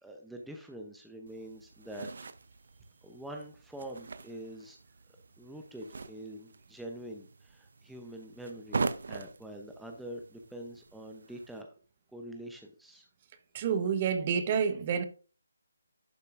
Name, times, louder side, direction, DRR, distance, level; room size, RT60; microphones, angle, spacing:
voice 1, 0.0-2.1 3.0-4.8 5.4-11.7 12.1-13.1, right 1 dB, ahead, 0.7 m, -45 dB
sound 1, 1.3-11.6, right 4 dB, 60° right, 0.6 m, -42 dB
voice 2, 13.5-15.0, right 7 dB, 30° right, 1.0 m, -28 dB
11.5 x 6.7 x 2.5 m
figure-of-eight pair, 155°, 0 cm